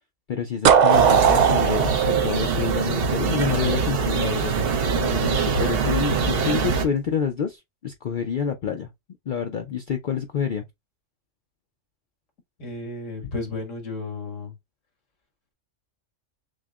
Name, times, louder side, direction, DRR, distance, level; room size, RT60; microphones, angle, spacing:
voice 1, 0.3-8.9 9.3-10.6, left 7 dB, 55° left, 0.6 m, -28 dB
sound 1, 0.6-3.5, right 7 dB, 70° right, 0.4 m, -18 dB
sound 2, 0.9-6.9, right 5 dB, 55° right, 0.9 m, -24 dB
voice 2, 12.6-14.5, left 3 dB, 80° left, 2.0 m, -33 dB
6.3 x 2.1 x 2.3 m
omnidirectional pair, 1.3 m